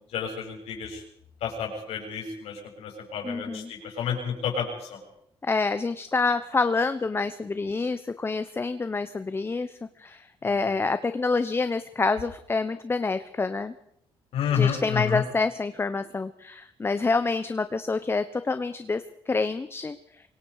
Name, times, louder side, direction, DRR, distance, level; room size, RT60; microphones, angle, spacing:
voice 1, 0.1-1.0 1.4-5.0 10.4-10.6 14.3-15.2, left 7 dB, 85° left, 1 dB, 7.1 m, -30 dB
voice 2, 3.2-3.7 5.4-13.7 14.5-20.2, left 4 dB, 25° left, 11 dB, 1.0 m, -27 dB
25.0 x 22.0 x 5.0 m, 0.72 s
cardioid pair, 100°, 10 cm